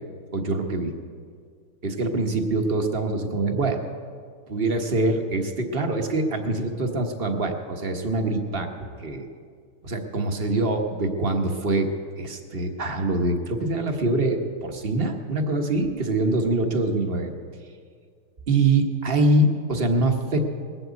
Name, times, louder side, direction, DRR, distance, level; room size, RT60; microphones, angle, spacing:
voice 1, 0.3-0.9 1.8-3.8 4.5-8.7 9.0-9.2 9.8-11.9 12.2-17.3 18.5-20.6, right 2 dB, 35° right, 4 dB, 1.0 m, -24 dB
20.5 x 7.8 x 8.2 m, 2.1 s
omnidirectional pair, 2.3 m